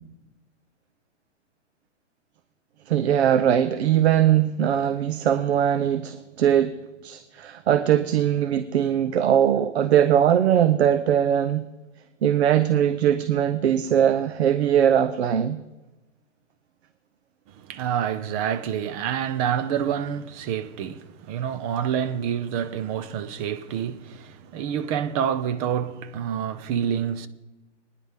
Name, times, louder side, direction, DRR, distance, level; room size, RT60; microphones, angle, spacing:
voice 1, 2.9-6.8 7.0-11.7 12.2-15.6, right 10 dB, 60° right, 0.9 m, -21 dB
voice 2, 17.6-27.3, right 9 dB, 30° right, 0.9 m, -27 dB
24.5 x 10.0 x 3.7 m
hypercardioid pair, 130°, 36 cm